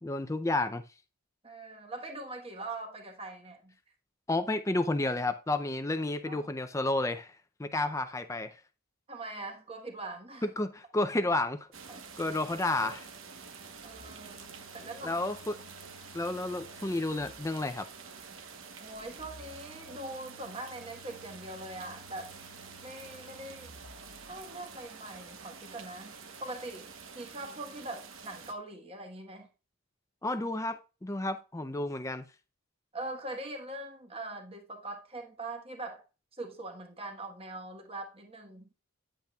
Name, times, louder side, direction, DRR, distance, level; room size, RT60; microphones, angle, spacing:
voice 1, 0.0-0.8 4.3-8.6 10.4-11.6 12.2-13.1 15.0-15.6 16.1-17.9 30.2-32.2, left 2 dB, 15° left, 0.4 m, -31 dB
voice 2, 1.4-3.7 6.2-6.5 9.1-10.5 11.9-12.0 13.8-15.2 18.8-22.3 22.8-23.7 24.3-26.1 26.4-29.5 32.9-36.0 36.3-38.7, right 2 dB, 25° right, 1.2 m, -42 dB
sound 1, 11.7-28.5, right 5 dB, 70° right, 1.1 m, -48 dB
Telephone, 13.7-17.8 18.9-24.6, left 2 dB, 85° left, 0.8 m, -57 dB
10.0 x 8.1 x 2.3 m
head